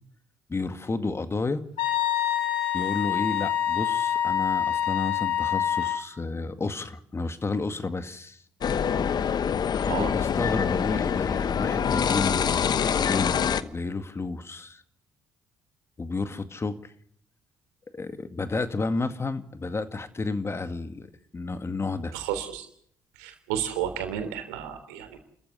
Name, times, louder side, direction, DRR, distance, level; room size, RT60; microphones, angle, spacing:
voice 1, 0.5-1.6 2.7-8.4 9.8-12.4 13.0-14.8 16.0-16.8 17.9-22.1, left 3 dB, 30° left, 10 dB, 2.1 m, -31 dB
Wind instrument woodwind instrument, 1.8-6.0, left 10 dB, 75° left, 2.5 m, -26 dB
sound 1, 8.6-13.6, left 7 dB, 50° left, 1.1 m, -25 dB
voice 2, 22.1-22.7 23.2-25.2, right 9 dB, 85° right, 7 dB, 3.4 m, -32 dB
30.0 x 14.5 x 8.4 m, 0.65 s
hypercardioid pair, 55°, 9 cm